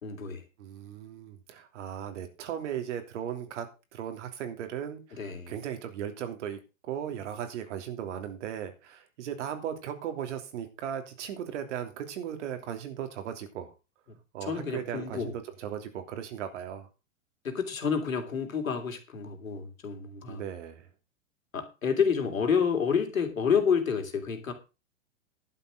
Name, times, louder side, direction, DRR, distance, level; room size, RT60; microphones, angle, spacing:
voice 1, 0.0-0.4 5.2-5.5 14.4-15.3 17.4-20.4 21.5-24.5, left 6 dB, 85° left, 3.1 m, -29 dB
voice 2, 0.6-3.7 3.9-13.7 14.3-16.9 20.3-20.9, right 9 dB, 60° right, 3.1 m, -37 dB
11.5 x 7.1 x 6.3 m
hypercardioid pair, 110°, 39 cm